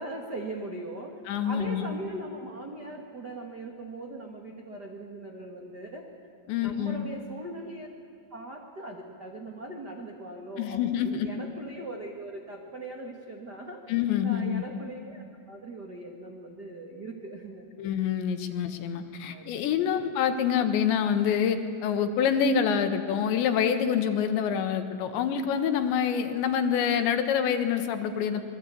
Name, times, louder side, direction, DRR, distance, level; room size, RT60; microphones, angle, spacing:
voice 1, 0.0-1.1 1.4-6.0 6.6-7.9 8.3-13.8 14.2-17.7 19.3-19.5 19.8-20.1, right 2 dB, 85° right, 1 dB, 0.9 m, -40 dB
voice 2, 1.3-1.9 6.5-7.0 10.6-11.3 13.9-14.6 17.8-28.4, left 8 dB, 70° left, 8 dB, 3.5 m, -26 dB
26.5 x 22.0 x 8.5 m, 2.3 s
omnidirectional pair, 5.5 m